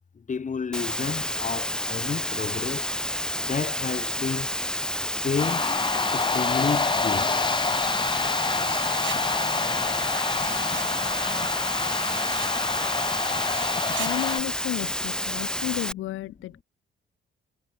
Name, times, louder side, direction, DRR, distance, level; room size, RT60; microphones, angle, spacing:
voice 1, 0.2-2.9 3.4-4.5 5.2-5.7 6.1-7.4 9.1-9.3, left 5 dB, 40° left, 7.2 m, -31 dB
Water, 0.7-15.9, left 1 dB, 5° left, 4.5 m, -30 dB
sound 1, 5.4-14.4, left 4 dB, 25° left, 1.5 m, -27 dB
sound 2, 8.5-9.2 10.2-10.9 11.8-12.5 13.4-14.1, right 12 dB, 70° right, 2.2 m, -40 dB
voice 2, 14.0-16.6, left 16 dB, 90° left, 1.9 m, -32 dB
cardioid pair, 90°, 20 cm